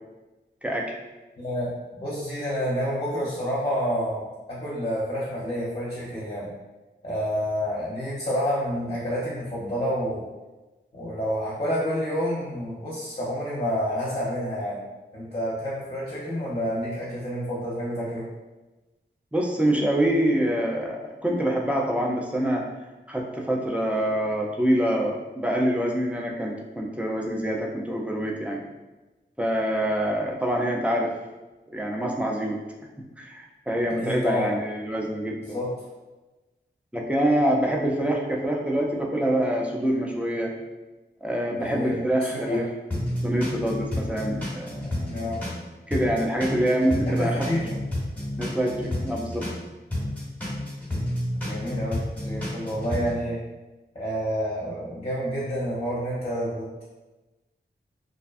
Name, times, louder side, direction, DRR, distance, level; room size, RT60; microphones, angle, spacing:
voice 1, 0.6-0.9 19.3-22.7 23.1-28.6 29.4-31.1 31.7-32.6 33.2-35.6 36.9-40.6 41.2-42.7 43.2-44.9 45.9-47.5 48.4-49.5, right 1 dB, 5° right, -1 dB, 0.4 m, -25 dB
voice 2, 1.4-6.5 7.0-10.2 10.9-14.8 15.1-18.3 33.8-34.5 35.4-35.7 41.5-42.1 42.3-42.6 45.1-45.4 47.1-47.7 51.4-52.0 52.2-53.4 53.9-56.8, equal, 35° left, -7 dB, 0.7 m, -29 dB
sound 1, 42.9-45.6 45.9-49.6 49.9-53.1, left 1 dB, 10° left, 1.2 m, -30 dB
2.5 x 2.2 x 2.4 m, 1.1 s
wide cardioid pair, 55°, 19 cm